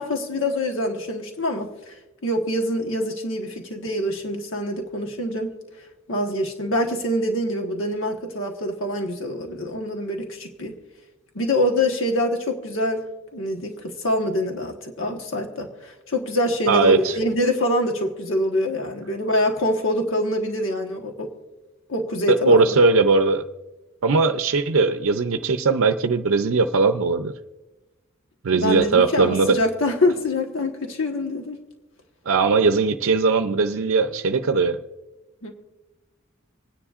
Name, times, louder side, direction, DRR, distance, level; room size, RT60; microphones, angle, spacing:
voice 1, 0.0-1.9 2.2-5.5 6.1-10.7 11.3-13.0 13.3-21.3 21.9-22.8 28.6-31.6 35.4-35.5, left 1 dB, 65° left, 3 dB, 1.3 m, -25 dB
voice 2, 16.7-17.2 22.3-23.4 24.0-27.3 28.4-29.6 32.3-34.8, right 4 dB, 80° right, 8 dB, 0.5 m, -19 dB
26.5 x 9.8 x 2.5 m, 1.1 s
head